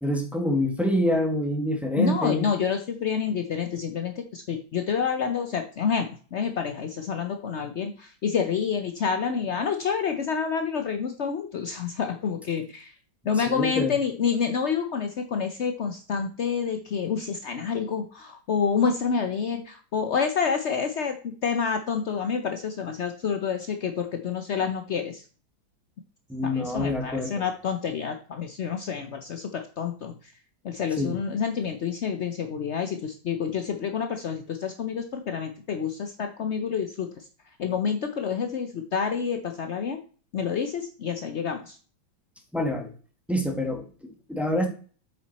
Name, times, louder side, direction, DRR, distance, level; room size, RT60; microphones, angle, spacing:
voice 1, 0.0-2.5 13.5-13.9 26.3-27.4 31.0-31.2 42.5-42.9 43.3-44.7, left 1 dB, ahead, 3 dB, 1.5 m, -26 dB
voice 2, 2.0-12.9 13.2-25.2 26.4-30.3 30.6-37.3 37.6-40.0 40.3-41.8, left 6 dB, 75° left, 6 dB, 0.6 m, -28 dB
8.2 x 6.7 x 4.1 m, 0.40 s
omnidirectional pair, 2.2 m